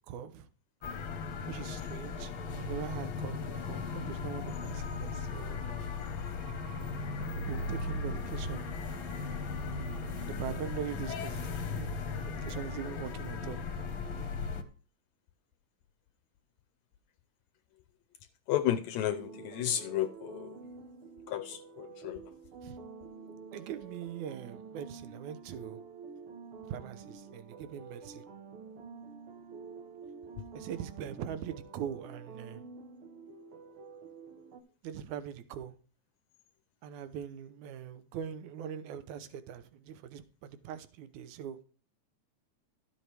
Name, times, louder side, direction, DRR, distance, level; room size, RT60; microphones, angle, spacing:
voice 1, 0.1-0.5 1.5-5.6 7.2-8.7 10.1-13.6 22.6-22.8 23.5-25.8 26.6-28.3 30.5-32.7 34.8-35.7 36.8-41.6, right 9 dB, 75° right, 2.3 m, -42 dB
sound 1, 0.8-14.6, left 4 dB, 55° left, 1.5 m, -37 dB
voice 2, 18.5-20.6 21.3-22.3, left 11 dB, 75° left, 1.8 m, -32 dB
sound 2, 19.1-34.6, right 5 dB, 60° right, 1.6 m, -49 dB
13.0 x 7.8 x 3.3 m
omnidirectional pair, 3.5 m